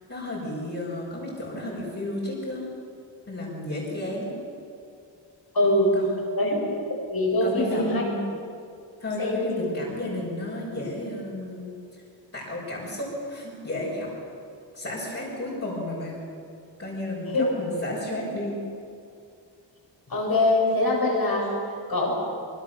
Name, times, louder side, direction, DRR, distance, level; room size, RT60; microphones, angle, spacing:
voice 1, 0.1-2.7 3.3-4.4 5.9-6.2 7.4-8.2 9.0-12.0 12.3-14.1 14.7-16.2 16.8-18.6, left 1 dB, 35° left, -7 dB, 6.5 m, -32 dB
voice 2, 5.5-5.9 6.4-6.7 7.1-8.0 9.2-9.6 17.3-17.4 20.1-21.6 21.9-22.1, left 2 dB, 50° left, -2 dB, 7.9 m, -23 dB
26.0 x 24.5 x 7.1 m, 2.4 s
wide cardioid pair, 180°, 46 cm